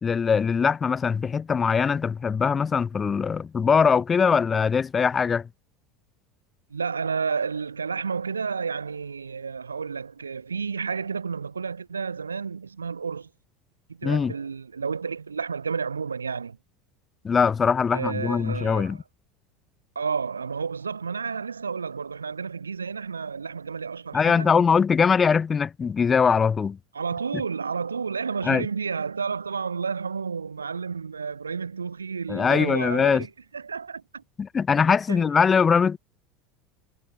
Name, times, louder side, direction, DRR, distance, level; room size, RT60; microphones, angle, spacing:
voice 1, 0.0-5.5 14.0-14.3 17.2-19.0 24.1-26.8 28.4-28.7 32.3-33.2 34.4-36.0, left 6 dB, 25° left, 3.1 m, -22 dB
voice 2, 6.7-13.3 13.9-16.6 17.9-19.0 19.9-24.5 26.9-34.2 35.1-35.3, right 5 dB, 90° right, 4.9 m, -31 dB
hypercardioid pair, 75°, 0 cm